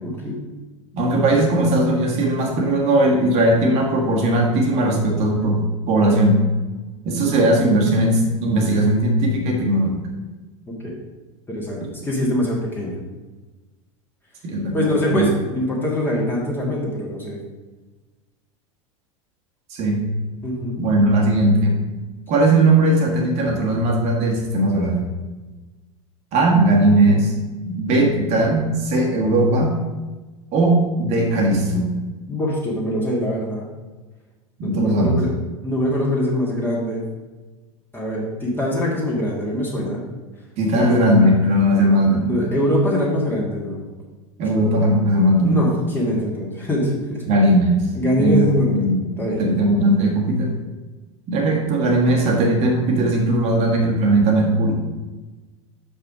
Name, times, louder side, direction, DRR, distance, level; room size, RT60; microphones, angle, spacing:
voice 1, 0.0-0.5 10.7-11.0 11.5-13.0 14.7-17.4 20.4-20.8 32.3-33.7 34.6-35.3 35.6-37.0 37.9-40.0 40.7-41.0 42.2-43.9 45.4-47.3 48.0-49.5, left 1 dB, 10° left, -4 dB, 1.9 m, -23 dB
voice 2, 0.9-6.4 7.1-10.0 11.8-11.9 14.4-15.3 19.7-20.0 20.8-21.8 22.3-25.0 26.3-27.3 27.7-29.8 30.5-31.9 34.6-35.2 40.6-42.3 44.4-45.6 47.3-47.9 48.1-50.5 51.3-54.9, right 1 dB, 40° right, 0 dB, 1.6 m, -18 dB
6.7 x 5.5 x 5.0 m, 1.2 s
figure-of-eight pair, 80°, 17 cm